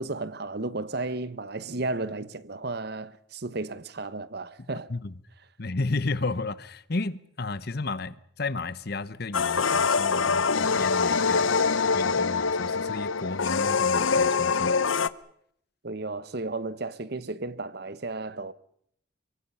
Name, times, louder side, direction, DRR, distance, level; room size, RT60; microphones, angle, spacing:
voice 1, 0.0-4.9 15.8-18.5, right 2 dB, 55° right, 1.0 m, -33 dB
voice 2, 5.6-11.6 11.9-14.8, left 3 dB, 50° left, 1.0 m, -33 dB
sound 1, 9.3-15.1, left 5 dB, 80° left, 0.9 m, -24 dB
29.0 x 23.5 x 5.6 m
head